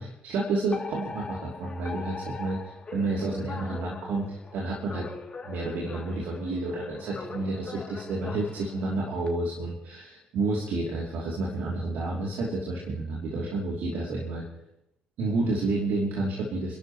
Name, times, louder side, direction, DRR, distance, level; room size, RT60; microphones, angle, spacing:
voice 1, 0.0-5.1 5.4-14.4 15.2-16.8, right 2 dB, 65° right, -3 dB, 2.8 m, -30 dB
Alarm, 0.7-9.3, left 4 dB, 35° left, 2.7 m, -42 dB
29.5 x 11.5 x 3.1 m, 0.79 s
hypercardioid pair, 45°, 3 cm